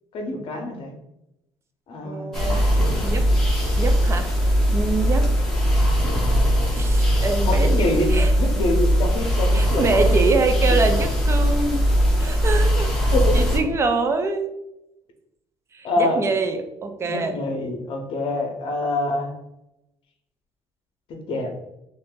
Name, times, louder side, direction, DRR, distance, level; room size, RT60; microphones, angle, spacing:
voice 1, 0.1-0.9 1.9-2.4 7.5-8.1 8.4-10.3 10.7-10.8 13.1-13.4 15.8-16.2 17.0-19.3 21.3-21.5, left 2 dB, 55° left, 3 dB, 0.7 m, -25 dB
voice 2, 2.0-2.7 3.0-4.3 4.7-5.3 6.8-8.3 9.5-11.8 12.2-12.9 13.3-14.5 15.7-17.3, right 3 dB, 25° right, 6 dB, 0.4 m, -25 dB
sound 1, 2.3-13.6, equal, 5° left, 0.7 m, -20 dB
2.6 x 2.5 x 3.7 m, 0.86 s
cardioid pair, 135°, 10 cm